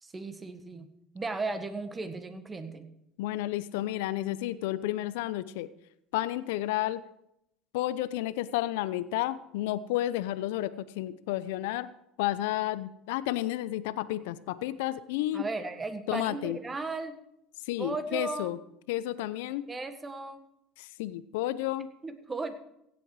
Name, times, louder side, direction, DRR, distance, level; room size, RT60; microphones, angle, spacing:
voice 1, 0.0-0.9 1.1-2.9 15.3-17.2 17.8-18.5 19.7-20.4 22.0-22.5, right 3 dB, 20° right, 9 dB, 1.6 m, -36 dB
voice 2, 3.2-5.7 6.1-7.0 7.7-11.9 12.2-15.4 16.1-16.6 17.6-18.6 18.9-19.7 20.8-21.9, left 14 dB, 80° left, 16 dB, 0.6 m, -31 dB
16.5 x 7.7 x 4.8 m, 0.78 s
supercardioid pair, 85°, 0 cm